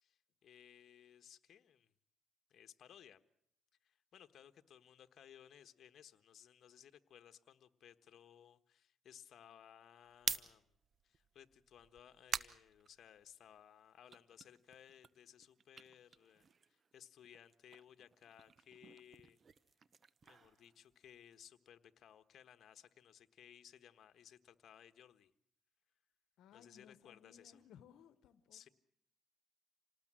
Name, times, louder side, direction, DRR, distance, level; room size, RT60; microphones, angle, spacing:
voice 1, 0.0-1.9 2.5-3.2 3.8-10.7 11.0-19.4 20.2-25.3 26.5-27.6 28.5-28.7, left 9 dB, 65° left, 1.3 m, -61 dB
sound 1, 10.1-13.6 14.0-16.9 17.2-21.3, right 6 dB, 45° right, 0.9 m, -47 dB
voice 2, 26.4-28.7, left 9 dB, 85° left, 1.1 m, -62 dB
27.5 x 19.0 x 7.6 m
cardioid pair, 90°, 0 cm